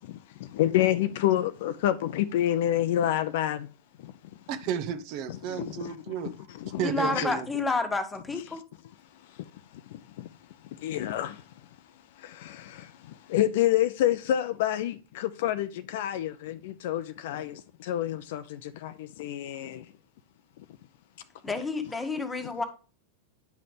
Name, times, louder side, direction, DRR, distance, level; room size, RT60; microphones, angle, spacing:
voice 1, 0.0-3.7 4.0-4.1 5.5-5.9 6.2-6.3 6.6-6.8 7.1-7.3 9.9-10.3 10.8-11.4 12.2-19.8, left 12 dB, 55° left, 0.6 m, -28 dB
voice 2, 4.5-6.3 6.8-7.5, right 8 dB, 45° right, 1.0 m, -32 dB
voice 3, 6.8-8.6 21.4-22.6, left 3 dB, 10° left, 1.4 m, -29 dB
10.5 x 5.7 x 3.3 m
figure-of-eight pair, 90°, 0 cm